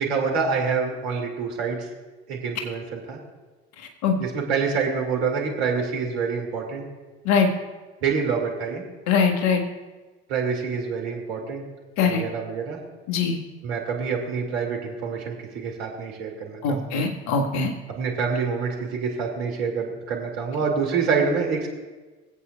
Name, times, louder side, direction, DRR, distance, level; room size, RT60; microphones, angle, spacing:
voice 1, 0.0-1.9 2.3-3.2 4.2-6.8 8.0-8.8 10.3-11.6 12.0-12.8 13.6-17.0 17.9-21.7, right 5 dB, 70° right, 1 dB, 2.4 m, -26 dB
voice 2, 3.8-4.2 7.3-7.5 9.1-9.6 12.0-12.2 13.1-13.4 16.6-17.7, left 5 dB, 55° left, 4 dB, 1.6 m, -22 dB
24.5 x 8.3 x 2.3 m, 1.3 s
hypercardioid pair, 65°, 33 cm